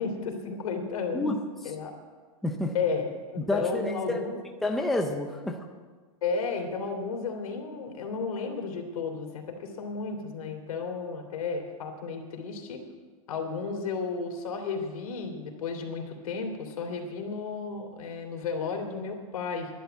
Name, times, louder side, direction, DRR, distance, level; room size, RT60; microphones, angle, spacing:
voice 1, 0.0-1.3 1.6-1.9 2.7-4.4 6.2-12.8 13.3-19.7, left 5 dB, 90° left, 3 dB, 3.0 m, -33 dB
voice 2, 2.4-2.7 3.4-4.2 4.6-5.6, left 2 dB, ahead, 2 dB, 0.5 m, -29 dB
12.0 x 11.0 x 8.0 m, 1.4 s
supercardioid pair, 180°, 18 cm